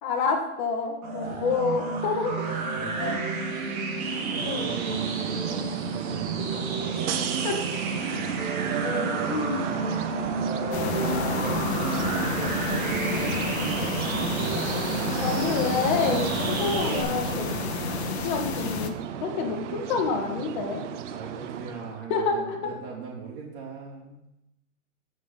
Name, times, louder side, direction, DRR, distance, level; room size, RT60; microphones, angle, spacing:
voice 1, 0.0-2.3 3.0-3.2 4.4-4.7 7.4-7.6 8.8-9.7 15.2-17.5 18.2-18.9 19.2-20.8 22.1-22.6, left 4 dB, 30° left, 1 dB, 1.7 m, -28 dB
sound 1, 1.0-17.0, right 4 dB, 70° right, 2.5 m, -31 dB
voice 2, 2.8-3.2 3.7-6.8 11.2-11.9 13.1-14.7 21.1-24.2, right 5 dB, 40° right, -5 dB, 3.0 m, -40 dB
sound 2, 3.9-22.0, right 9 dB, 55° right, 0.7 m, -34 dB
sound 3, 10.7-18.9, left 7 dB, 50° left, 1.0 m, -31 dB
14.0 x 5.2 x 5.7 m, 0.88 s
hypercardioid pair, 165°, 43 cm